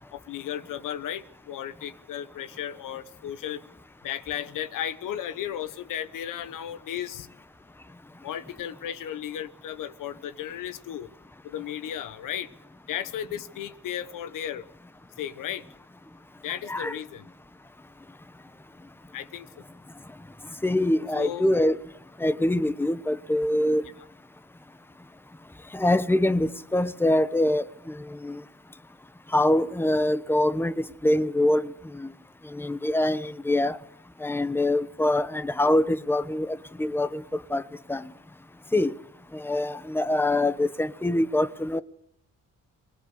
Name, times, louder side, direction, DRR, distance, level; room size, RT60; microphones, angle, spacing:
voice 1, 0.1-3.6 4.0-7.3 8.2-11.1 11.4-12.5 12.9-14.6 15.2-15.6 16.4-17.3 19.1-19.5 21.1-21.5 23.8-23.9 35.1-35.2, left 10 dB, 80° left, 1.3 m, -35 dB
voice 2, 20.6-21.8 22.2-23.9 25.7-28.4 29.3-32.1 32.4-33.8 34.2-37.6 37.9-38.1 38.7-38.9 39.3-41.8, left 1 dB, 5° left, 1.1 m, -24 dB
22.0 x 20.5 x 8.3 m
cardioid pair, 85°, 32 cm